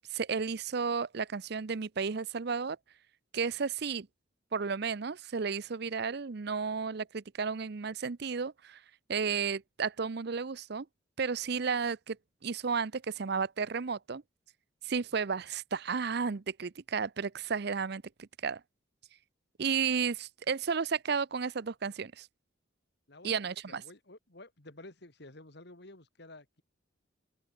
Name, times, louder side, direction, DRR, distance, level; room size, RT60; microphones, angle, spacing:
voice 1, 0.0-2.8 3.3-4.1 4.5-8.8 9.1-10.9 11.2-12.2 12.4-14.2 14.8-18.6 19.6-22.3 23.2-23.8, right 5 dB, 55° right, 0.6 m, -33 dB
voice 2, 23.1-26.6, left 2 dB, 60° left, 2.6 m, -52 dB
open air
head